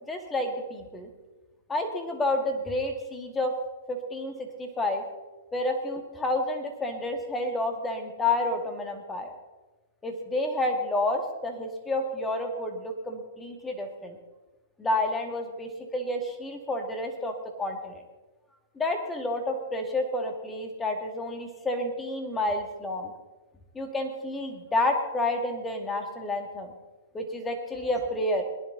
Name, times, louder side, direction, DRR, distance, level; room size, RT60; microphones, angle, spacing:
voice 1, 0.1-1.1 1.7-3.5 3.9-4.3 4.6-5.0 5.5-9.3 10.0-14.2 14.8-18.0 18.8-23.1 23.7-26.7 27.1-28.4, left 2 dB, 15° left, 4 dB, 2.3 m, -30 dB
21.5 x 10.5 x 4.1 m, 1.2 s
hypercardioid pair, 125°, 0 cm